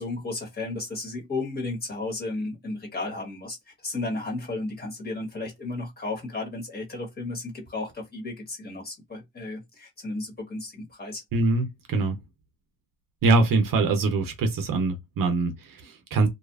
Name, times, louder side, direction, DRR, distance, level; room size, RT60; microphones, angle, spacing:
voice 1, 0.0-11.2, left 2 dB, 25° left, 1.2 m, -34 dB
voice 2, 11.3-12.2 13.2-16.3, right 3 dB, 70° right, 0.7 m, -23 dB
2.7 x 2.3 x 2.3 m
cardioid pair, 120°, 34 cm